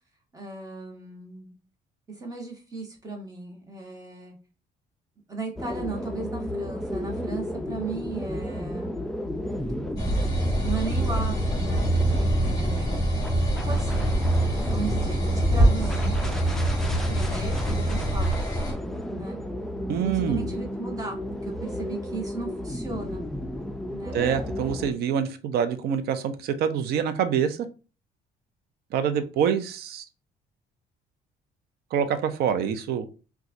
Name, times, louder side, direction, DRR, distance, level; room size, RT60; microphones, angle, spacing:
voice 1, 0.3-1.6 2.1-4.4 5.3-9.1 10.6-12.9 13.7-14.1 14.7-16.2 17.1-18.4 19.1-19.4 20.0-23.3 23.9-24.2, right 3 dB, 20° right, 1.1 m, -36 dB
sound 1, 5.5-24.9, left 1 dB, ahead, 0.3 m, -33 dB
sound 2, 10.0-18.7, right 1 dB, 20° left, 1.4 m, -24 dB
sound 3, 11.5-18.1, right 1 dB, 50° right, 1.3 m, -39 dB
voice 2, 19.9-20.5 24.1-27.7 28.9-30.0 31.9-33.0, right 8 dB, 70° right, 0.5 m, -26 dB
4.0 x 2.3 x 2.5 m
cardioid pair, 110°, 17 cm